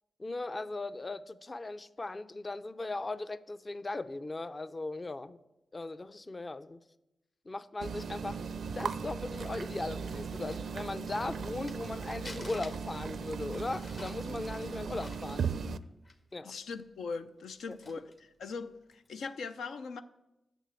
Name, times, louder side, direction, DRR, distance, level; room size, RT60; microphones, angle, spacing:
voice 1, 0.2-5.4 5.7-6.8 7.5-8.4 8.7-15.4 16.3-16.5 17.7-17.8, left 2 dB, 35° left, 0.5 m, -38 dB
sound 1, 7.8-15.8, right 5 dB, 75° right, 0.4 m, -38 dB
Crumpling crinkling, 9.1-11.9 12.2-16.4 16.7-16.8 17.4-18.3 18.8-19.1, left 2 dB, 55° left, 1.7 m, -52 dB
voice 2, 16.4-18.1 18.4-20.0, left 4 dB, 90° left, 0.5 m, -40 dB
9.1 x 6.8 x 8.2 m
cardioid pair, 55°, 0 cm